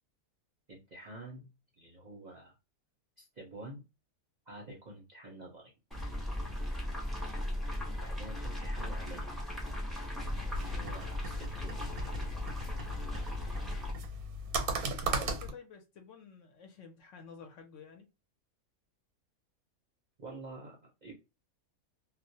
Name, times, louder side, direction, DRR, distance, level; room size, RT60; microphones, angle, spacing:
voice 1, 0.7-2.6 3.2-3.8 4.5-5.7 8.0-9.3 10.6-11.9 20.2-21.1, right 2 dB, 45° right, 0.6 m, -48 dB
sound 1, 5.9-13.9, left 1 dB, ahead, 0.4 m, -37 dB
sound 2, 10.2-15.5, right 2 dB, 90° right, 1.1 m, -37 dB
voice 2, 14.8-18.1, left 6 dB, 65° left, 0.8 m, -51 dB
2.4 x 2.0 x 2.6 m
omnidirectional pair, 1.5 m